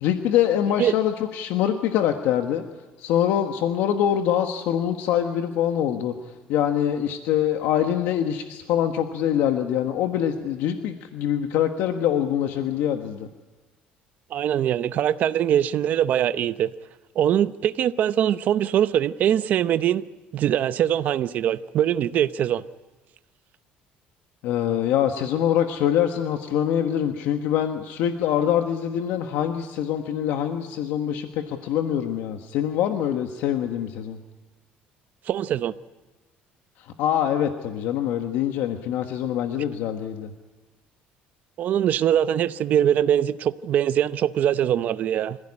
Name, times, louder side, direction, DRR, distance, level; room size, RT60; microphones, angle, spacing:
voice 1, 0.0-2.6 3.0-6.1 6.5-13.3 24.4-34.2 37.0-40.3, left 10 dB, 75° left, 1.5 m, -24 dB
voice 2, 14.3-16.7 17.1-20.0 20.3-22.6 35.3-35.7 41.6-45.4, right 10 dB, 50° right, 0.8 m, -22 dB
25.5 x 16.0 x 9.9 m
cardioid pair, 145°, 4 cm